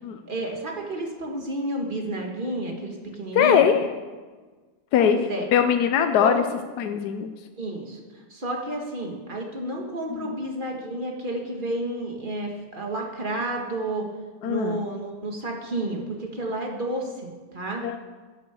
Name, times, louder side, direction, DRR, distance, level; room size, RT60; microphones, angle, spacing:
voice 1, 0.3-3.6 5.0-5.5 6.0-6.4 7.6-14.1 14.4-17.8, right 1 dB, 35° right, 1 dB, 1.8 m, -31 dB
voice 2, 3.3-3.9 4.9-5.2 5.5-6.4 6.8-7.3 10.2-10.3 14.4-14.8 17.8-18.0, left 8 dB, 80° left, 7 dB, 1.2 m, -21 dB
11.0 x 7.2 x 7.1 m, 1.4 s
omnidirectional pair, 1.7 m